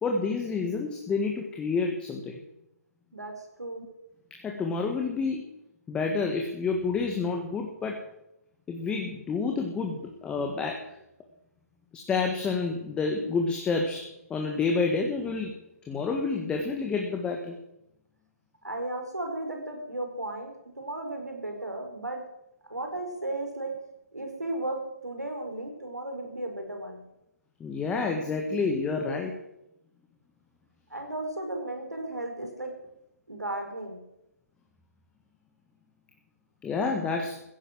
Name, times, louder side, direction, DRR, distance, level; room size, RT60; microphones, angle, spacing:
voice 1, 0.0-2.4 3.8-3.9 4.3-5.5 5.9-8.0 8.7-10.8 11.9-15.5 15.9-17.6 27.6-29.3 36.6-37.4, left 4 dB, 10° left, 2 dB, 1.7 m, -29 dB
voice 2, 3.1-3.8 18.6-22.2 22.7-23.7 24.1-27.0 30.9-32.7 33.3-34.0, right 1 dB, 90° right, 4 dB, 4.9 m, -35 dB
15.5 x 10.5 x 7.6 m, 0.84 s
figure-of-eight pair, 140°, 9 cm